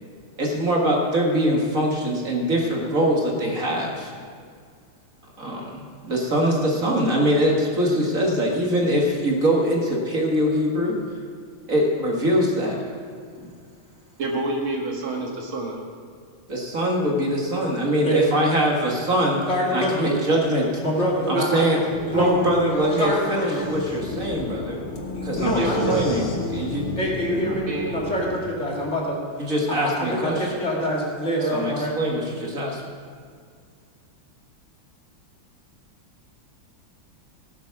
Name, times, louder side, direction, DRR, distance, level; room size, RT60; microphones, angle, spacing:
voice 1, 0.4-4.1 5.4-11.0 11.7-12.9 13.4-13.5 16.5-19.4 19.7-20.7 21.3-21.8 22.1-24.8 25.2-25.6 25.9-26.9 29.4-30.5 31.5-32.8, equal, 40° right, -1 dB, 2.0 m, -23 dB
voice 2, 14.2-15.8 21.3-21.6 25.6-26.1 27.7-28.0, right 2 dB, 75° right, 0 dB, 2.5 m, -27 dB
voice 3, 19.5-20.2 20.8-21.6 22.1-22.3 22.6-22.7 23.0-23.6 25.1-26.2 27.0-27.6 27.9-29.2 29.7-32.0, equal, 35° left, -3 dB, 2.3 m, -25 dB
sound 1, 21.9-28.4, left 2 dB, 70° left, 2.5 m, -32 dB
18.0 x 7.3 x 5.9 m, 2.1 s
omnidirectional pair, 2.3 m